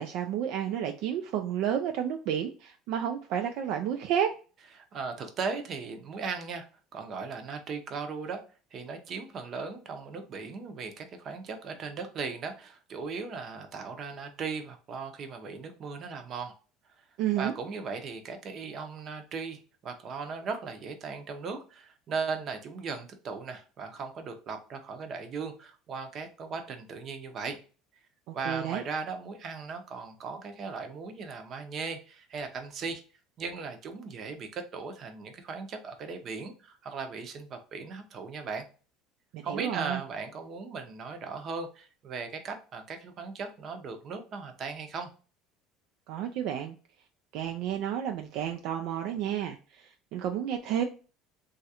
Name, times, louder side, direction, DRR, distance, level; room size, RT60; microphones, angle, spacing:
voice 1, 0.0-4.3 17.2-17.5 28.3-28.8 39.3-40.0 46.1-46.8 47.3-50.8, right 9 dB, 70° right, 5 dB, 0.3 m, -31 dB
voice 2, 4.8-6.6 6.9-8.4 8.7-16.5 17.4-27.6 28.3-33.0 33.4-38.6 39.4-45.1, right 5 dB, 45° right, 6 dB, 0.7 m, -37 dB
3.0 x 2.4 x 2.8 m, 0.36 s
supercardioid pair, 105°, 0 cm